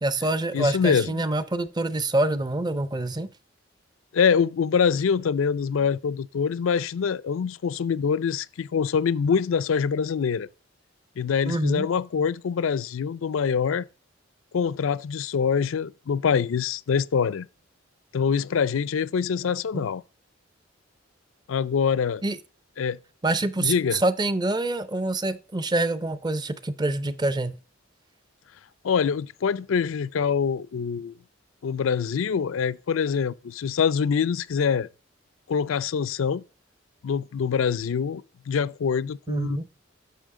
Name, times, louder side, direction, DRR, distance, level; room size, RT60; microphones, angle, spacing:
voice 1, 0.0-3.3 11.4-11.9 19.7-19.9 22.2-22.4 23.2-27.6 39.3-39.7, right 2 dB, 20° right, 0.5 m, -26 dB
voice 2, 0.5-1.2 4.1-10.5 11.2-13.9 14.5-17.5 18.1-20.0 21.5-22.2 22.8-23.0 23.6-24.0 28.8-31.1 31.6-34.9 35.5-36.4 37.0-39.6, left 6 dB, 80° left, 0.4 m, -25 dB
10.0 x 6.1 x 3.7 m
head